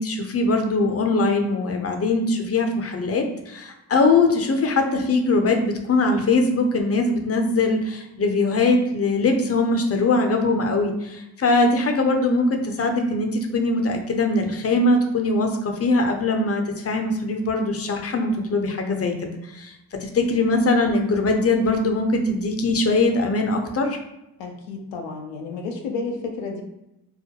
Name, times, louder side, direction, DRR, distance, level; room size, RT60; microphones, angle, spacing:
voice 1, 0.0-24.0, left 2 dB, 35° left, 4 dB, 0.5 m, -21 dB
voice 2, 24.4-26.6, left 4 dB, 85° left, 2 dB, 0.5 m, -31 dB
2.3 x 2.1 x 2.8 m, 0.89 s
supercardioid pair, 45°, 44 cm